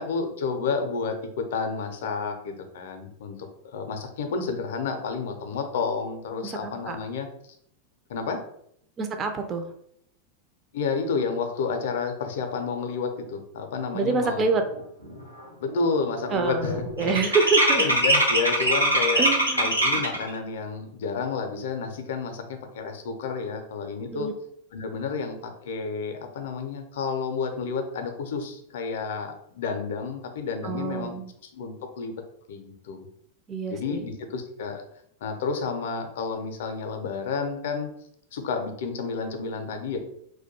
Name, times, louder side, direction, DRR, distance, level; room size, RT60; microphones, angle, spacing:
voice 1, 0.0-7.3 8.1-8.4 10.7-14.5 15.6-16.7 17.7-19.2 19.6-24.3 24.7-31.2 31.5-32.1 32.5-33.1 33.7-34.8 35.2-37.9 38.3-40.0, left 5 dB, 55° left, 5 dB, 0.4 m, -30 dB
voice 2, 6.6-7.0 9.0-9.7 13.9-14.6 16.3-17.9 19.2-19.8 24.1-24.3 30.6-31.3 33.5-34.1, right 4 dB, 25° right, 5 dB, 0.4 m, -26 dB
sound 1, 14.6-14.7 15.0-15.4 15.7-20.3, right 1 dB, 90° right, 0.6 m, -23 dB
2.2 x 2.1 x 2.8 m, 0.70 s
figure-of-eight pair, 90°, 0 cm